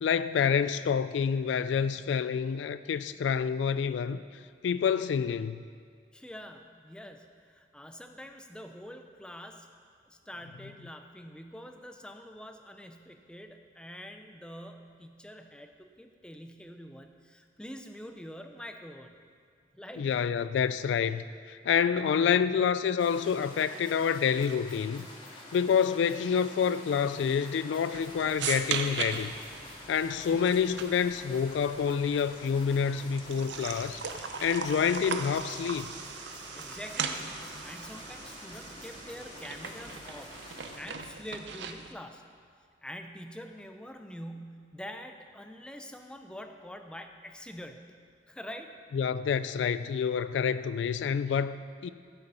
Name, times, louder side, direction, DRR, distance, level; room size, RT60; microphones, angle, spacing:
voice 1, 0.0-5.6 20.0-25.1 25.5-29.3 29.9-34.0 34.4-35.9 48.9-51.9, left 7 dB, 80° left, 14 dB, 0.3 m, -28 dB
voice 2, 6.1-9.7 10.0-19.1 19.7-20.1 36.5-40.3 40.8-42.2 42.8-48.0 48.3-48.7, equal, 5° left, 6 dB, 0.4 m, -45 dB
sound 1, 23.0-40.8, left 1 dB, 30° left, 1.8 m, -48 dB
sound 2, 27.9-41.9, right 6 dB, 75° right, 0.7 m, -39 dB
12.5 x 8.0 x 5.5 m, 2.1 s
head